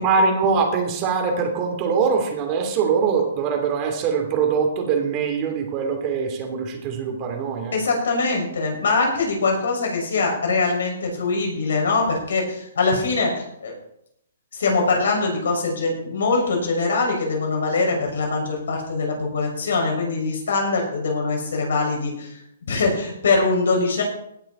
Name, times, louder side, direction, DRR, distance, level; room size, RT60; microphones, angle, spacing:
voice 1, 0.0-7.8, right 5 dB, 25° right, 3 dB, 2.7 m, -22 dB
voice 2, 7.7-13.7 14.5-22.4 22.7-24.0, left 3 dB, 75° left, 1 dB, 6.0 m, -23 dB
17.5 x 10.5 x 4.3 m, 0.76 s
hypercardioid pair, 160°, 0 cm